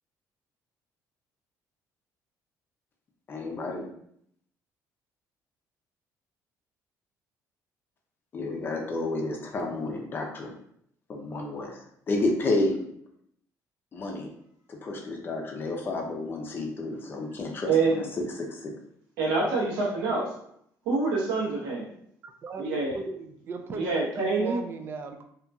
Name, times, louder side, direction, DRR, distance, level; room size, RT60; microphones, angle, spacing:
voice 1, 3.3-3.9 8.3-10.6 11.1-12.8 13.9-14.3 14.7-18.7, left 2 dB, 35° left, 1 dB, 0.5 m, -31 dB
voice 2, 17.7-18.0 19.2-20.4 20.9-21.9 22.6-22.9 23.7-24.6, right 3 dB, 90° right, -5 dB, 1.1 m, -26 dB
voice 3, 22.4-25.3, right 4 dB, 35° right, 6 dB, 0.3 m, -37 dB
2.8 x 2.6 x 2.3 m, 0.70 s
cardioid pair, 140°, 7 cm